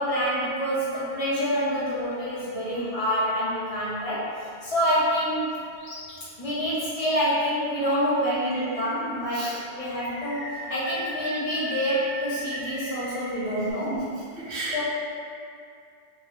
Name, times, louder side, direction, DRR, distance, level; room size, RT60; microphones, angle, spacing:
voice 1, 0.0-4.2 4.6-5.5 6.4-13.9 14.7-14.8, equal, 35° left, -9 dB, 0.8 m, -27 dB
Animal, 5.8-6.1 6.6-6.7 8.3-9.1 9.7-13.7, right 1 dB, 55° left, 1.1 m, -38 dB
voice 2, 14.5-14.8, right 2 dB, 70° right, -8 dB, 1.1 m, -32 dB
3.3 x 2.3 x 3.2 m, 2.3 s
omnidirectional pair, 1.2 m